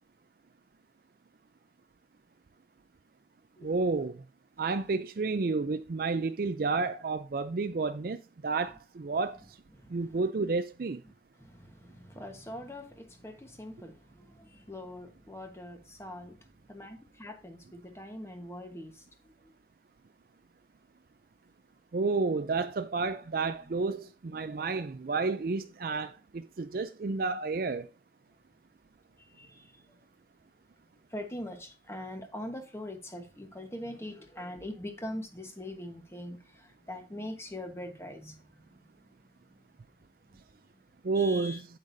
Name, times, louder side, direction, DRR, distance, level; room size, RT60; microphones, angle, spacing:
voice 1, 3.6-4.2 4.6-9.4 9.9-11.0 21.9-27.9 41.0-41.7, right 4 dB, 55° right, 0.4 m, -31 dB
voice 2, 9.7-10.2 11.4-16.4 16.7-19.0 19.4-19.5 23.6-23.8 24.3-24.5 29.3-29.8 31.1-38.4 38.7-38.8 41.1-41.6, left 1 dB, 15° left, 1.2 m, -43 dB
8.6 x 8.0 x 2.7 m
head